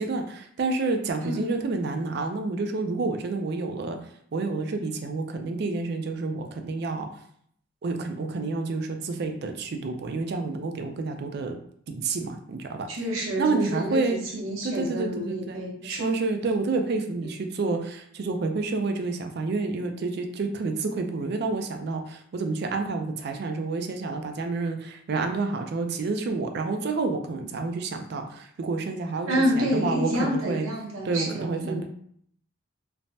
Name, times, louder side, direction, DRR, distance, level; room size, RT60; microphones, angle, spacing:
voice 1, 0.0-4.0 4.3-7.1 7.8-11.6 11.9-12.9 13.4-14.2 14.6-29.3 29.6-30.7 31.0-31.9, right 3 dB, 50° right, 5 dB, 0.4 m, -29 dB
voice 2, 12.9-16.2 17.2-17.3 29.3-31.8, equal, 75° right, -3 dB, 0.8 m, -28 dB
3.2 x 2.0 x 2.7 m, 0.65 s
head